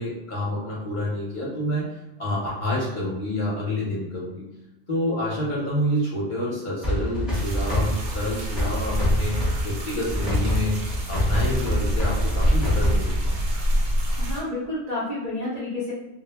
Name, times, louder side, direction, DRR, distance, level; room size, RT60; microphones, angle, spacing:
voice 1, 0.0-1.9 2.2-4.4 4.9-13.1, left 1 dB, 45° left, -6 dB, 0.7 m, -28 dB
sound 1, 6.8-13.6, equal, ahead, 0.7 m, -26 dB
sound 2, 7.3-14.4, equal, 75° right, 1.2 m, -27 dB
voice 2, 14.2-15.9, left 2 dB, 40° right, -9 dB, 0.6 m, -30 dB
2.3 x 2.0 x 3.2 m, 1.0 s
omnidirectional pair, 1.3 m